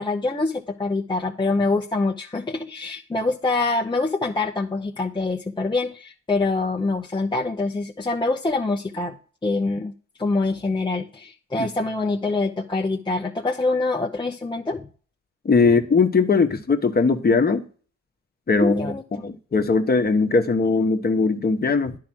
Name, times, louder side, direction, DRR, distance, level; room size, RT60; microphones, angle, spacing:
voice 1, 0.0-9.2 9.4-9.9 10.2-14.9 18.6-19.2 21.9-22.0, left 3 dB, 15° left, 0.8 m, -25 dB
voice 2, 15.4-17.7 18.5-18.9 19.2-21.9, left 4 dB, 30° left, 1.2 m, -20 dB
10.5 x 4.7 x 6.1 m
cardioid pair, 90°, 30 cm